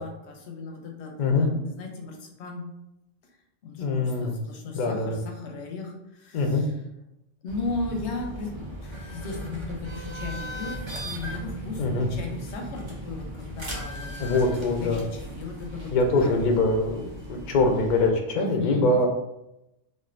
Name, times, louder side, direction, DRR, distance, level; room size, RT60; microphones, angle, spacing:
voice 1, 0.0-2.6 3.6-6.8 7.4-16.4 18.4-18.9, left 3 dB, 85° left, 2 dB, 0.9 m, -36 dB
voice 2, 3.8-4.3 4.7-5.2 6.3-6.6 11.8-12.1 14.2-15.0 15.9-19.1, left 2 dB, 55° left, 3 dB, 0.5 m, -23 dB
sound 1, 7.5-18.1, right 1 dB, 35° right, 0.5 m, -37 dB
3.2 x 2.4 x 2.4 m, 0.87 s
omnidirectional pair, 1.1 m